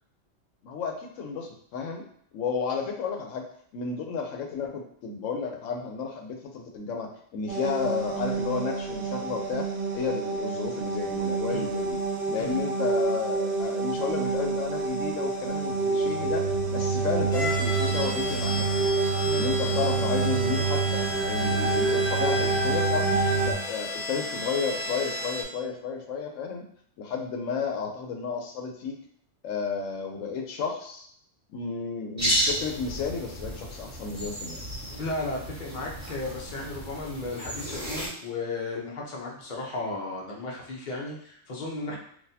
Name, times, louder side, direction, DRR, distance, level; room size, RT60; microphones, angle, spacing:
voice 1, 0.6-2.1 2.3-3.4 3.7-9.7 9.9-12.0 12.3-18.9 19.3-26.6 27.0-29.0 29.4-31.1 31.5-34.6 41.9-42.0, left 5 dB, 90° left, 2 dB, 1.0 m, -32 dB
sound 1, 7.5-23.5, right 4 dB, 60° right, 0.9 m, -27 dB
sound 2, 17.3-25.4, left 1 dB, 20° left, 0.4 m, -34 dB
voice 2, 19.3-19.8 34.9-42.0, left 2 dB, 45° left, -2 dB, 0.8 m, -35 dB
sound 3, 32.2-38.1, equal, 15° right, 1.4 m, -33 dB
3.9 x 2.5 x 2.7 m, 0.65 s
omnidirectional pair, 1.3 m